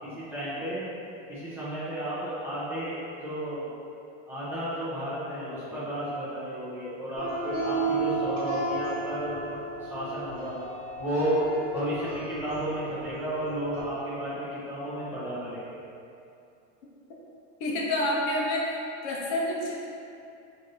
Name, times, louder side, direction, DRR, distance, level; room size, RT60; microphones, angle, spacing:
voice 1, 0.0-0.9 1.3-2.9 3.2-3.7 4.3-10.6 11.0-11.4 11.7-15.8, right 1 dB, 5° right, -11 dB, 0.5 m, -33 dB
sound 1, 7.1-13.8, right 3 dB, 25° right, 1.3 m, -33 dB
voice 2, 17.6-19.9, left 1 dB, 50° left, -3 dB, 0.6 m, -28 dB
3.1 x 2.6 x 4.0 m, 2.6 s
supercardioid pair, 165°, 33 cm